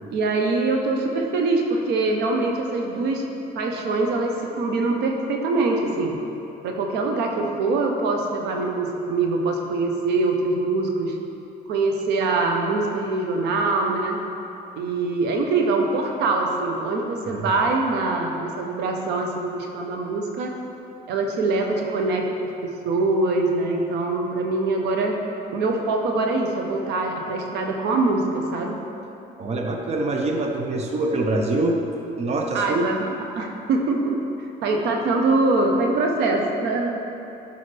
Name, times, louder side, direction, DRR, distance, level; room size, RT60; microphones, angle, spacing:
voice 1, 0.1-3.2 3.5-6.2 6.6-11.2 11.7-14.2 14.8-20.5 21.1-25.2 25.5-28.8 32.5-34.2 34.6-37.0, right 3 dB, 80° right, 2 dB, 0.9 m, -23 dB
voice 2, 17.2-17.7 29.4-31.8 32.2-32.9, right 2 dB, 40° right, 1 dB, 0.9 m, -25 dB
11.5 x 5.6 x 3.3 m, 3.0 s
cardioid pair, 110°, 17 cm